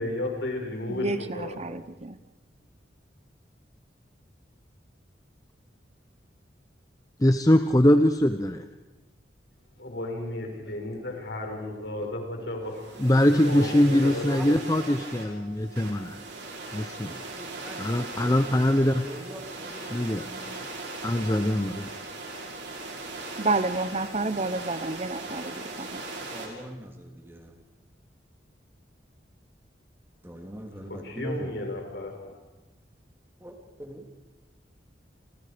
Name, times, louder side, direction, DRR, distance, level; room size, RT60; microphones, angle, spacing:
voice 1, 0.0-1.5 9.8-13.0 13.4-14.6 30.9-32.4, left 1 dB, 70° left, 2 dB, 5.9 m, -34 dB
voice 2, 0.9-2.2 23.4-26.0, right 3 dB, 35° right, 12 dB, 0.8 m, -30 dB
voice 3, 7.2-8.6 13.0-16.2 16.7-17.1 17.8-19.1 19.9-20.2 20.5-20.6 21.0-21.9, left 1 dB, 20° left, 8 dB, 0.8 m, -22 dB
sound 1, 12.7-26.5, right 2 dB, 80° right, 6.1 m, -39 dB
voice 4, 13.0-15.2 17.0-20.6 26.3-27.6 30.2-31.6 33.4-34.1, equal, 15° right, 3 dB, 2.9 m, -43 dB
29.5 x 28.5 x 5.2 m, 1.1 s
head